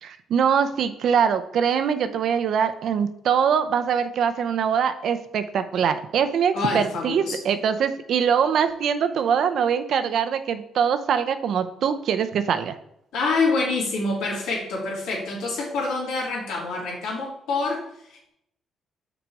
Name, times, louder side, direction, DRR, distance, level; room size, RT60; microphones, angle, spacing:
voice 1, 0.0-12.7, right 7 dB, 70° right, 10 dB, 0.6 m, -23 dB
voice 2, 6.5-7.4 13.1-18.3, left 3 dB, 85° left, -4 dB, 2.6 m, -26 dB
6.1 x 4.0 x 4.8 m, 0.75 s
cardioid pair, 90°, 0 cm